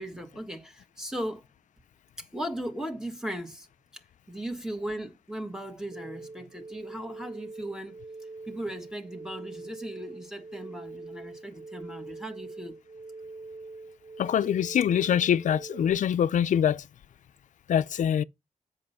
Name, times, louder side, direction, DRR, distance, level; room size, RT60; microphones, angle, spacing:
voice 1, 0.0-1.4 2.2-3.7 3.9-8.0 8.4-12.8, right 1 dB, 5° right, 1.7 m, -37 dB
sound 1, 5.9-15.9, right 3 dB, 75° right, 2.7 m, -43 dB
voice 2, 14.2-16.8 17.7-18.2, left 9 dB, 75° left, 0.4 m, -24 dB
7.5 x 5.4 x 5.7 m
cardioid pair, 70°, 13 cm